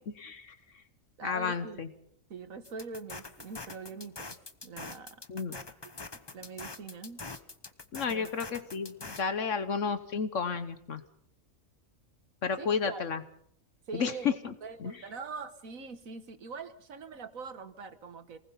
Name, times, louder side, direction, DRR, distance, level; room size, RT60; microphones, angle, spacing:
voice 1, 0.1-0.8 1.2-1.9 5.3-5.6 7.9-11.0 12.4-13.2 13.9-14.5 14.8-15.0, left 6 dB, 65° left, 11 dB, 1.4 m, -32 dB
voice 2, 1.2-1.8 2.3-5.2 5.5-5.9 6.3-7.2 8.1-8.3 12.6-13.0 13.9-18.4, right 4 dB, 85° right, 10 dB, 1.9 m, -43 dB
sound 1, 2.6-9.2, left 3 dB, 20° left, 0.8 m, -44 dB
27.0 x 19.5 x 5.7 m, 0.69 s
omnidirectional pair, 1.4 m